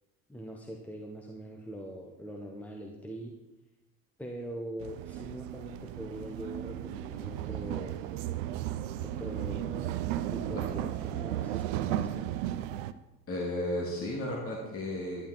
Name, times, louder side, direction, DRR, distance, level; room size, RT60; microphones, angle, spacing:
voice 1, 0.3-3.4 4.2-8.0 9.0-10.0 10.3-12.3, equal, 5° left, 1 dB, 1.4 m, -42 dB
sound 1, 4.8-12.9, right 12 dB, 55° right, 0.7 m, -35 dB
voice 2, 13.3-15.3, left 1 dB, 30° left, -2 dB, 2.8 m, -34 dB
11.5 x 11.5 x 4.2 m, 1.0 s
figure-of-eight pair, 70°, 45 cm